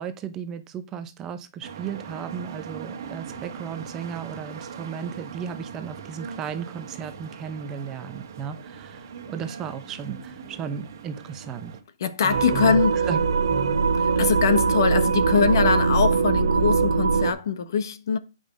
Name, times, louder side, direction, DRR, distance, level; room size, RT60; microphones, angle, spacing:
voice 1, 0.0-11.8 12.2-12.8 13.1-13.2 13.5-13.9, right 7 dB, 15° right, 0.7 m, -35 dB
sound 1, 1.6-11.8, right 6 dB, 50° right, 1.5 m, -40 dB
voice 2, 12.0-13.0 13.9-18.2, left 6 dB, 55° left, 1.1 m, -23 dB
sound 2, 12.3-17.3, right 5 dB, 85° right, 1.6 m, -21 dB
8.3 x 5.4 x 5.2 m
hypercardioid pair, 155°, 2 cm